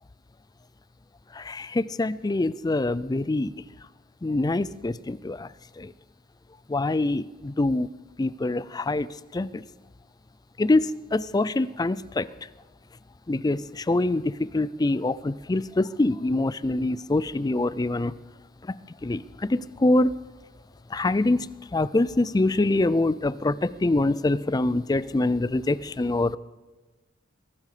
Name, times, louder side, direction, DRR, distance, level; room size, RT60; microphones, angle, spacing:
voice 1, 1.4-3.5 4.2-5.5 5.8-5.9 6.7-7.9 8.2-9.1 9.3-9.6 10.6-12.3 13.3-18.1 19.0-20.1 20.9-21.5 21.7-26.4, left 2 dB, 20° left, 17 dB, 0.4 m, -25 dB
21.5 x 12.0 x 5.0 m, 1.3 s
head